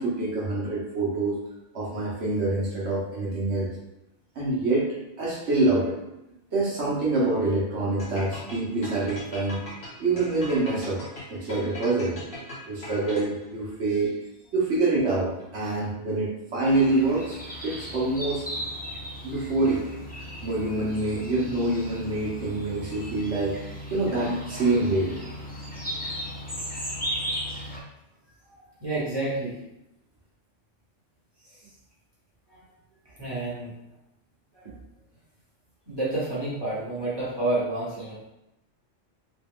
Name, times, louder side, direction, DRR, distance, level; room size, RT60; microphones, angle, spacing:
voice 1, 0.0-1.4 1.7-3.7 4.3-4.9 5.2-5.9 6.5-9.6 10.0-11.0 11.3-12.2 12.7-14.1 14.5-18.4 19.2-20.0 20.4-23.5 23.9-25.1, right 2 dB, 65° right, -5 dB, 1.1 m, -26 dB
sound 1, 8.0-13.5, left 1 dB, 50° left, 1.3 m, -40 dB
sound 2, 16.7-27.8, equal, 15° left, 0.3 m, -36 dB
voice 2, 28.4-29.6 31.4-31.7 32.5-32.6 33.0-33.7 34.5-34.7 35.9-38.2, right 2 dB, 20° right, -9 dB, 1.2 m, -30 dB
4.0 x 2.3 x 3.5 m, 0.90 s
omnidirectional pair, 1.3 m